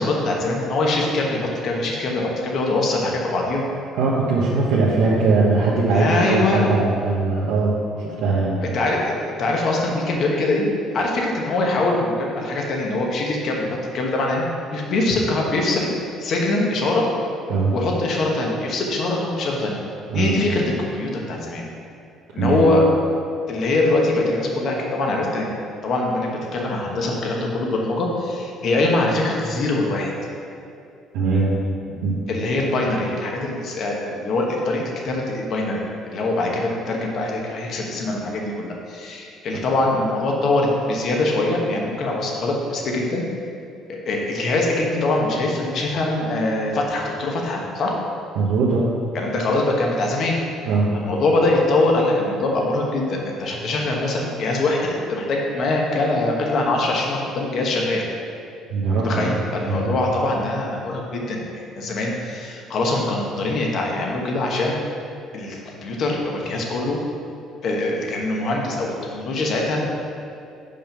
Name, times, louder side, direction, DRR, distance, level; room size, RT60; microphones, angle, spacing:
voice 1, 0.0-3.6 5.9-6.6 8.7-10.7 10.9-15.9 16.2-17.0 17.7-19.8 20.1-21.6 22.3-22.9 23.5-25.5 25.8-30.1 32.3-43.2 43.9-47.9 49.1-50.4 50.9-58.1 58.9-64.8 65.3-67.0 67.6-69.9, left 2 dB, 55° left, -1 dB, 1.3 m, -23 dB
voice 2, 3.9-7.8 8.0-8.6 17.5-17.7 20.1-20.4 22.3-22.7 31.1-31.5 32.0-32.2 48.4-48.9 50.6-50.9 58.7-59.3 59.7-59.9, right 3 dB, 85° right, -6 dB, 1.1 m, -20 dB
5.3 x 5.2 x 5.9 m, 2.5 s
cardioid pair, 110°, 0 cm